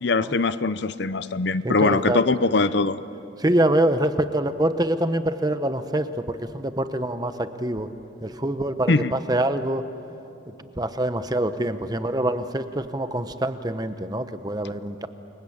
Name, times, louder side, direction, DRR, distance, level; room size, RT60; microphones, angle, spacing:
voice 1, 0.0-3.0 8.9-9.1, left 3 dB, 55° left, 14 dB, 0.7 m, -22 dB
voice 2, 1.6-2.2 3.4-7.9 8.2-9.8 10.8-15.1, right 1 dB, 20° right, 10 dB, 0.9 m, -25 dB
29.0 x 23.5 x 8.7 m, 2.9 s
head